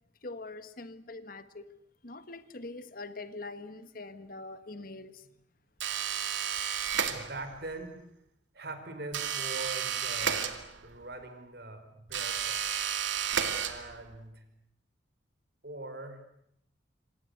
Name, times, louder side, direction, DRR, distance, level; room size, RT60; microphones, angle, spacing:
voice 1, 0.2-1.7 2.0-5.3, left 2 dB, 50° left, 11 dB, 1.5 m, -43 dB
sound 1, 5.8-7.6 9.1-11.0 12.1-14.2, right 8 dB, 80° right, 2.5 m, -32 dB
voice 2, 7.1-8.0 8.5-10.5 10.8-12.6 13.5-14.4 15.6-16.2, right 2 dB, 60° right, 8 dB, 4.9 m, -42 dB
27.0 x 26.5 x 8.0 m, 0.74 s
head